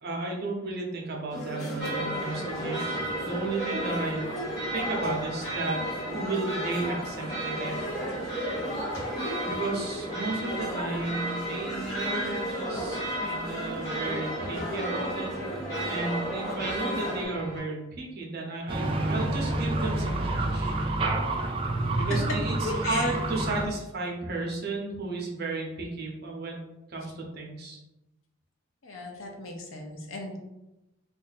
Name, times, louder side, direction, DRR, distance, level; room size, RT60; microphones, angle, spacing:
voice 1, 0.0-4.3 4.7-5.8 6.1-7.9 9.4-20.8 21.9-27.8, right 2 dB, 50° right, -1 dB, 0.8 m, -34 dB
sound 1, 1.3-17.3, equal, 35° left, 1.3 m, -35 dB
sound 2, 1.8-17.6, equal, 15° left, 1.4 m, -35 dB
sound 3, 18.7-23.7, right 2 dB, 25° right, 0.4 m, -28 dB
voice 2, 22.7-23.1 28.8-30.4, left 2 dB, 80° left, 2 dB, 0.7 m, -36 dB
2.6 x 2.4 x 4.0 m, 0.95 s
head